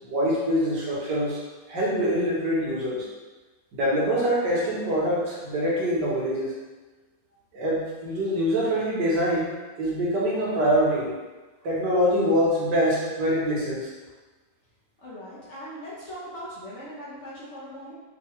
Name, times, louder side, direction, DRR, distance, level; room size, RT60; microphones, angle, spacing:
voice 1, 0.0-1.4 1.7-3.1 3.7-6.5 7.5-9.5 9.8-11.1 11.6-13.9, equal, 80° right, -5 dB, 1.7 m, -24 dB
voice 2, 15.0-17.9, equal, 55° left, -8 dB, 0.9 m, -40 dB
4.6 x 2.7 x 3.1 m, 1.2 s
omnidirectional pair, 1.8 m